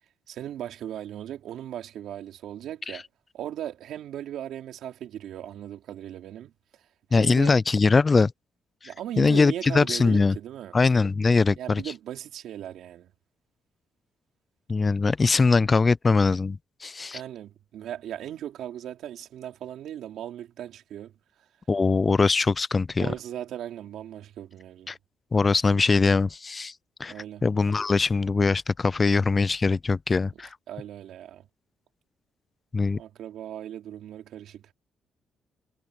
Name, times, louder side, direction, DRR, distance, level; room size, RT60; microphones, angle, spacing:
voice 1, 0.3-3.0 3.3-6.5 7.1-7.6 8.8-10.7 11.6-13.1 17.1-21.1 23.0-24.9 27.1-27.4 30.7-31.4 33.0-34.6, right 11 dB, 75° right, 3.4 m, -37 dB
voice 2, 7.1-8.3 9.2-10.3 10.7-11.8 14.7-17.2 21.7-23.1 24.9-25.0 25.3-26.7 27.0-27.1 27.4-30.5 32.7-33.0, left 4 dB, 30° left, 0.4 m, -22 dB
cardioid pair, 90°, 0 cm